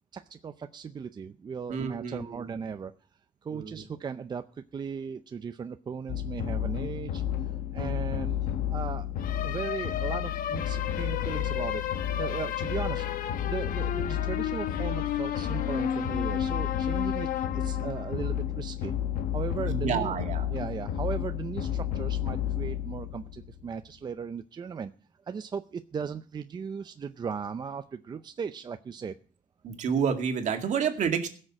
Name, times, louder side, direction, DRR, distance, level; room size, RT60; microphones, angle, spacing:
voice 1, 0.1-2.9 3.4-9.1 9.4-17.3 17.5-18.9 19.3-20.2 20.5-24.9 25.2-29.2, right 6 dB, 30° right, 9 dB, 0.5 m, -37 dB
voice 2, 1.7-2.4 3.5-3.8 19.7-20.5 29.6-31.3, right 7 dB, 60° right, 5 dB, 2.2 m, -29 dB
sound 1, 6.1-23.7, left 10 dB, 90° left, 1.1 m, -30 dB
17.0 x 6.7 x 7.4 m, 0.42 s
cardioid pair, 130°, 14 cm